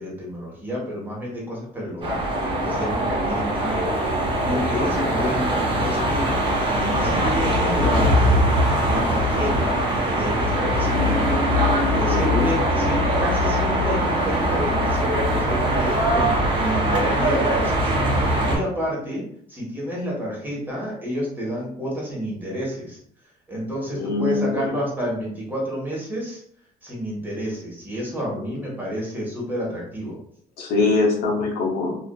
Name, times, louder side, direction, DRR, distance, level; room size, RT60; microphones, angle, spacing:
voice 1, 0.0-2.2 2.6-3.9 4.4-6.3 7.0-8.4 8.9-11.4 11.9-17.9 18.4-23.0 23.5-26.4 26.8-30.2, equal, 10° right, -5 dB, 1.2 m, -30 dB
sound 1, 2.0-18.6, equal, 30° right, 0.8 m, -21 dB
voice 2, 4.8-5.2 12.1-12.5 23.9-24.7 28.4-28.5 30.6-31.9, left 3 dB, 70° left, -1 dB, 0.7 m, -23 dB
2.5 x 2.4 x 2.3 m, 0.64 s
cardioid pair, 110°, 17 cm